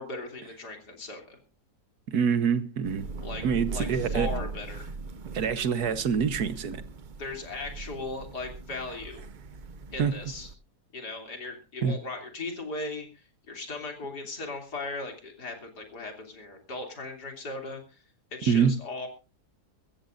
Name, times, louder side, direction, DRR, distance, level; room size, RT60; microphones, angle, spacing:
voice 1, 0.0-1.4 3.2-3.4 3.7-4.9 7.2-9.2 9.9-10.5 10.9-18.0 18.3-19.1, left 3 dB, 90° left, 3.7 m, -38 dB
voice 2, 2.1-3.1 3.4-4.3 5.3-6.8 10.0-10.1 11.8-12.0 18.5-18.7, right 7 dB, 70° right, 1.7 m, -25 dB
Thunder / Rain, 2.8-10.5, right 3 dB, 45° right, 0.6 m, -39 dB
23.0 x 14.5 x 2.6 m
omnidirectional pair, 1.7 m